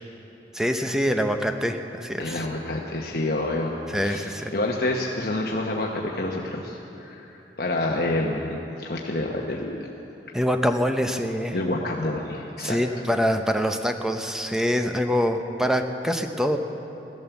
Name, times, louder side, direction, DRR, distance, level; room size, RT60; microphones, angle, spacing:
voice 1, 0.5-2.4 3.9-4.5 10.3-11.6 12.6-16.6, equal, 5° right, 6 dB, 0.7 m, -25 dB
voice 2, 2.2-3.7 4.0-8.4 8.8-9.9 11.5-12.8, left 2 dB, 55° left, -1 dB, 1.1 m, -28 dB
16.0 x 12.5 x 7.1 m, 3.0 s
head